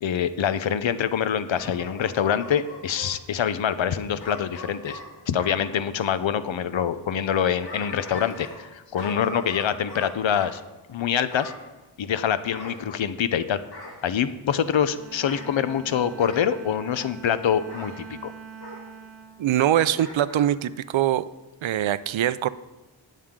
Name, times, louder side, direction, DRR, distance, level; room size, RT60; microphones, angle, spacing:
voice 1, 0.0-5.0 5.3-10.6 10.9-11.5 12.0-13.6 14.0-18.3, left 8 dB, 80° left, 13 dB, 0.7 m, -25 dB
Bark / Growling, 1.5-3.1 4.2-5.7 7.3-8.7 8.9-10.5 11.3-11.6 12.5-13.3 13.7-14.0 15.1-15.5 16.2-16.5 17.7-17.9 18.6-18.8 19.9-20.5 20.9-21.0, left 1 dB, 55° left, 2.6 m, -40 dB
Bowed string instrument, 14.9-20.4, right 6 dB, 50° right, 2.6 m, -44 dB
voice 2, 19.4-21.3 21.6-22.5, right 11 dB, 85° right, 16 dB, 0.6 m, -23 dB
19.0 x 7.5 x 3.7 m, 1.1 s
wide cardioid pair, 130°, 45 cm